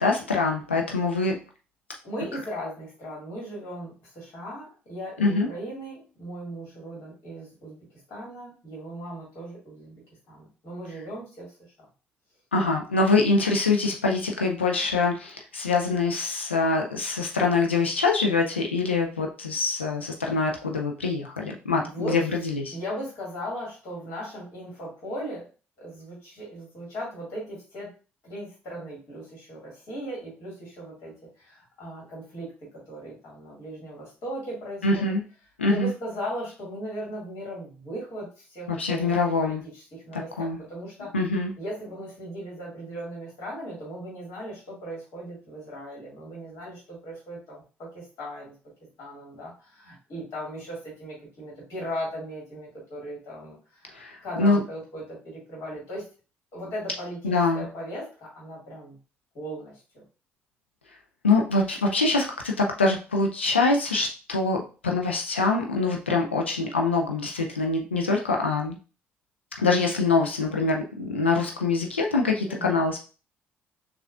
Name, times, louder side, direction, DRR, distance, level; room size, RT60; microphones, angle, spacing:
voice 1, 0.0-1.4 5.2-5.5 12.5-22.8 34.8-35.2 35.6-35.9 38.7-39.6 40.1-40.6 41.1-41.5 53.9-54.6 57.2-57.7 61.2-68.8 69.6-73.0, left 3 dB, 90° left, 1 dB, 0.4 m, -24 dB
voice 2, 2.0-7.8 8.1-10.0 10.3-11.5 21.8-22.2 22.7-25.5 25.8-27.9 28.2-35.2 35.6-39.1 39.4-41.2 41.6-48.5 49.0-56.1 56.5-59.0 59.3-60.0 72.5-72.8, equal, 55° left, -4 dB, 1.9 m, -38 dB
6.1 x 2.4 x 2.3 m, 0.35 s
figure-of-eight pair, 45°, 6 cm